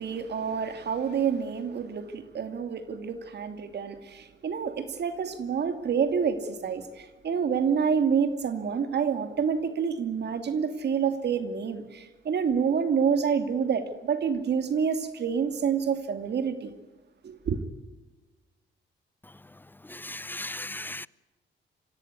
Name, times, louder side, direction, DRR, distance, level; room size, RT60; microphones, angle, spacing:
voice 1, 0.0-16.7 17.2-17.6, right 6 dB, 55° right, 2.6 m, -28 dB
voice 2, 20.0-21.1, left 2 dB, 10° left, 0.7 m, -36 dB
26.0 x 16.5 x 9.7 m
cardioid pair, 90°, 20 cm